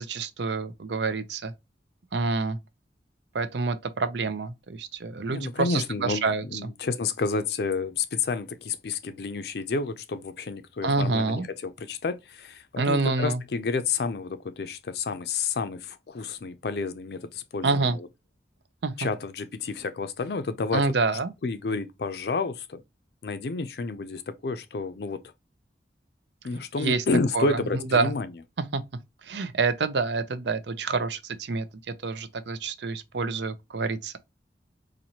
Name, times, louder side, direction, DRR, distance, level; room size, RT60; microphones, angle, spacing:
voice 1, 0.0-1.5 2.1-2.6 3.3-6.7 10.8-11.4 12.8-13.4 17.6-18.0 18.8-18.9 20.7-21.3 26.8-27.0 27.3-27.6 27.9-28.1 28.7-28.8 29.2-31.6 32.0-34.2, right 4 dB, 80° right, 0.6 m, -27 dB
voice 2, 5.3-18.1 19.0-20.8 21.4-22.8 23.2-25.3 26.4-28.3, left 4 dB, 60° left, 0.4 m, -30 dB
4.2 x 2.6 x 2.8 m
head